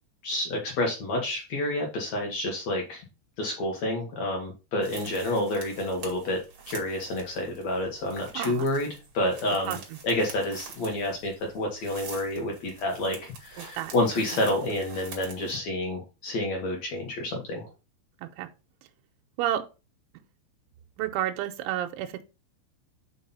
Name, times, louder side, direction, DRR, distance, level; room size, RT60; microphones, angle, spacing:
voice 1, 0.2-3.0 3.4-6.4 6.7-8.9 9.1-9.8 10.0-17.7, left 1 dB, 80° left, 1.5 m, -29 dB
sound 1, 4.8-15.6, right 5 dB, 45° right, 1.8 m, -46 dB
voice 2, 8.4-8.7 9.7-10.0 13.6-13.9 18.2-18.5 19.4-19.7 21.0-22.2, right 11 dB, 90° right, 3.1 m, -31 dB
5.6 x 5.5 x 5.5 m
omnidirectional pair, 5.4 m